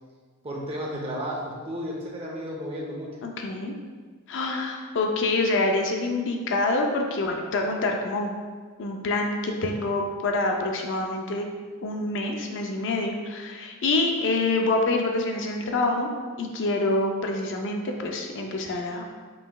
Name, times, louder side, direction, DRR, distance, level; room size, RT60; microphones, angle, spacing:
voice 1, 0.4-3.2, equal, 25° right, -3 dB, 0.7 m, -33 dB
voice 2, 3.2-3.7 4.3-8.3 8.8-11.5 11.8-16.1 16.4-19.0, left 2 dB, 55° left, 2 dB, 0.5 m, -26 dB
5.4 x 3.1 x 2.3 m, 1.5 s
head